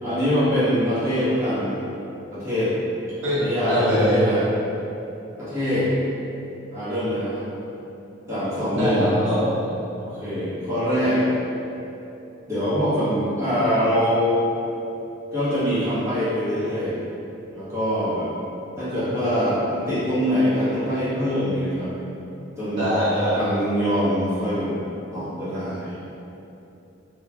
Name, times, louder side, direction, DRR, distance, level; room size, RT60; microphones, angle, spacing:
voice 1, 0.0-1.8 2.3-2.7 3.4-4.4 5.4-5.9 6.7-7.4 8.3-9.1 10.0-11.2 12.5-14.4 15.3-17.0 17.5-18.3 18.8-21.9 22.6-22.9 23.3-24.7 25.1-25.9, equal, 15° right, -14 dB, 1.3 m, -23 dB
voice 2, 3.7-4.2 8.7-9.7 22.7-23.4, equal, 90° right, -11 dB, 1.2 m, -22 dB
3.8 x 3.2 x 2.3 m, 2.9 s
head